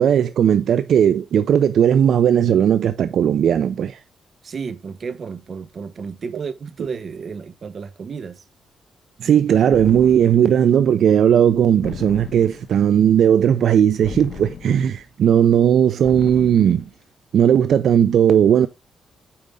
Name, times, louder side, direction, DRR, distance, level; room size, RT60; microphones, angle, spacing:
voice 1, 0.0-4.0 9.2-16.9 17.3-18.7, right 9 dB, 70° right, 0.6 m, -16 dB
voice 2, 4.4-8.4, right 5 dB, 50° right, 1.0 m, -32 dB
sound 1, 9.7-10.6 11.8-12.8 14.0-15.0 16.0-16.9, left 6 dB, 60° left, 1.2 m, -36 dB
8.7 x 5.2 x 3.8 m
cardioid pair, 100°, 0 cm